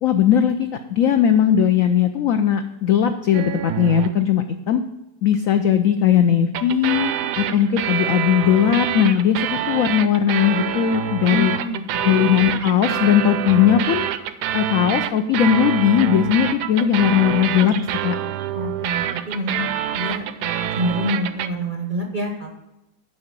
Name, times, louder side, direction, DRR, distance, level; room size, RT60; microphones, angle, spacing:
voice 1, 0.0-4.8 5.2-11.5 12.0-14.0 14.5-17.8 18.0-18.2, left 9 dB, 85° left, 8 dB, 0.7 m, -18 dB
sound 1, 3.3-4.2 6.5-21.5, right 11 dB, 70° right, 1.0 m, -26 dB
voice 2, 11.2-12.0 18.5-22.5, equal, 50° right, 2 dB, 0.6 m, -27 dB
7.7 x 5.5 x 7.4 m, 0.91 s
omnidirectional pair, 2.0 m